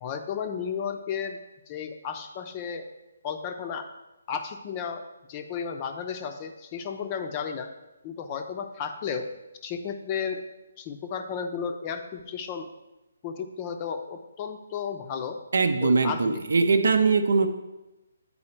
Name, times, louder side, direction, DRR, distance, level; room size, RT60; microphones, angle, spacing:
voice 1, 0.0-1.4 1.7-2.9 3.2-3.9 4.3-5.0 5.3-7.7 8.0-9.3 9.6-10.4 10.8-12.7 13.2-15.4 15.8-16.4, left 6 dB, 30° left, 6 dB, 0.5 m, -33 dB
voice 2, 15.5-17.5, right 4 dB, 70° right, 8 dB, 0.7 m, -21 dB
8.7 x 4.1 x 4.3 m, 1.0 s
hypercardioid pair, 150°, 0 cm